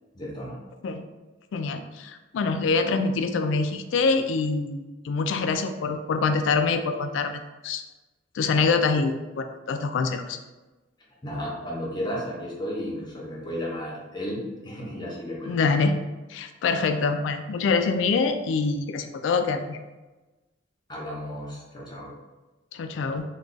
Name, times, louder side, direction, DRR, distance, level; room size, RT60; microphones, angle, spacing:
voice 1, 0.1-0.6 11.2-15.6 20.9-22.1, equal, 25° left, -4 dB, 0.7 m, -33 dB
voice 2, 1.5-7.8 8.3-10.4 15.5-16.0 16.3-19.8 22.7-23.2, left 4 dB, 80° left, 8 dB, 0.3 m, -25 dB
2.3 x 2.3 x 3.8 m, 1.1 s
head